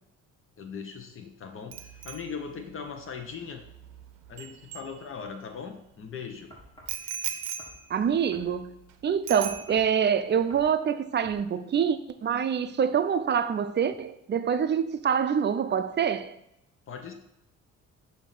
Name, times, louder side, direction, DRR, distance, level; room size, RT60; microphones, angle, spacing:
voice 1, 0.6-3.6 4.3-6.5 16.9-17.1, left 6 dB, 45° left, 1.0 m, -39 dB
Bicycle bell, 1.7-5.5 6.9-8.9 9.3-10.1 10.4-10.7, right 10 dB, 85° right, 0.6 m, -40 dB
sound 1, 6.5-7.0 7.6-7.8 8.3-8.5 9.4-9.9 10.5-10.7 11.2-11.4, equal, 15° left, 1.8 m, -50 dB
voice 2, 7.9-8.7 9.0-16.4, right 7 dB, 35° right, 0.5 m, -26 dB
6.9 x 2.8 x 5.9 m
cardioid pair, 90°, 30 cm